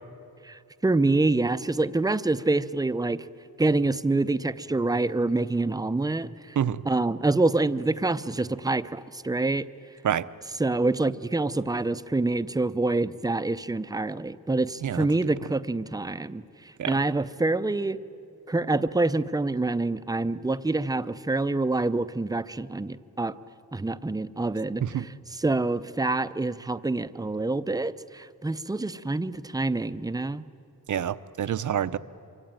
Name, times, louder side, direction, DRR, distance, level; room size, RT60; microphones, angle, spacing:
voice 1, 0.4-3.2 3.6-6.6 6.8-9.7 10.6-16.4 16.9-18.0 18.5-23.4 23.7-30.4, right 2 dB, 10° right, 14 dB, 0.5 m, -26 dB
voice 2, 30.9-32.0, right 9 dB, 55° right, 15 dB, 0.7 m, -27 dB
26.0 x 23.5 x 9.0 m, 2.7 s
wide cardioid pair, 155°, 36 cm